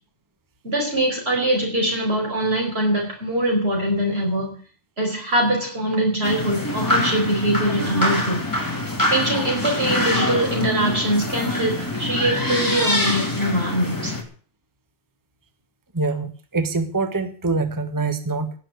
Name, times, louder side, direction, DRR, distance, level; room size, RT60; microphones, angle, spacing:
voice 1, 0.6-4.6 5.0-8.4 9.1-14.2, right 1 dB, 60° right, 0 dB, 5.1 m, -22 dB
sound 1, 6.2-14.2, left 1 dB, 15° left, 3.3 m, -24 dB
voice 2, 15.9-18.5, right 3 dB, 15° right, 9 dB, 1.3 m, -24 dB
17.5 x 7.5 x 8.1 m, 0.42 s
omnidirectional pair, 1.2 m